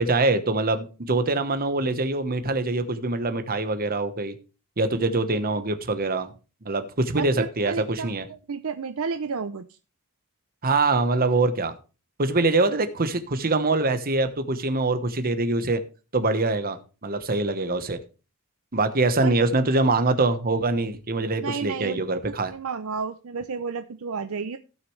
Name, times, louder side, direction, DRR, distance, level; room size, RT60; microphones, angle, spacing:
voice 1, 0.0-4.3 4.8-6.3 6.6-8.3 10.6-11.7 12.2-15.8 16.1-18.0 18.7-22.5, right 2 dB, 45° right, 1.1 m, -24 dB
voice 2, 7.2-9.7 19.2-19.3 21.4-24.6, right 5 dB, 70° right, 0.6 m, -32 dB
16.5 x 6.2 x 3.2 m
head